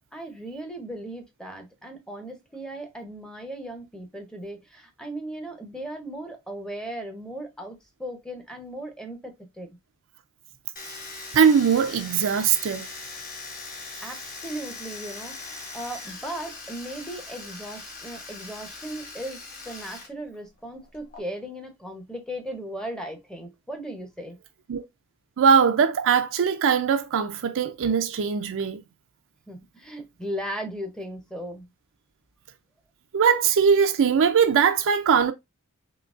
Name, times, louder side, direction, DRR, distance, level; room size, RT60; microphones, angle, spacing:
voice 1, 0.1-9.7 14.0-19.4 19.6-24.4 29.5-31.6, right 1 dB, 5° left, 0.7 m, -37 dB
Domestic sounds home sounds, 10.8-20.1 20.3-21.2, left 3 dB, 40° left, 1.2 m, -40 dB
voice 2, 11.3-12.8 24.7-24.8 25.4-28.8 33.1-35.3, right 6 dB, 60° right, 0.4 m, -21 dB
3.8 x 2.7 x 2.4 m
head